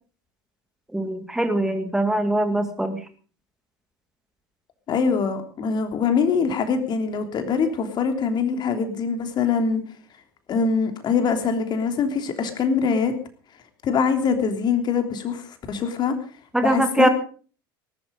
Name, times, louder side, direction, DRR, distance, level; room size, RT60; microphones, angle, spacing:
voice 1, 0.9-3.0 16.5-17.1, right 1 dB, 5° right, 8 dB, 2.2 m, -22 dB
voice 2, 4.9-9.8 10.5-13.1 13.8-15.4 15.7-16.1 16.6-17.1, left 5 dB, 40° left, 6 dB, 3.3 m, -23 dB
19.5 x 12.5 x 5.3 m, 0.41 s
hypercardioid pair, 80°, 12 cm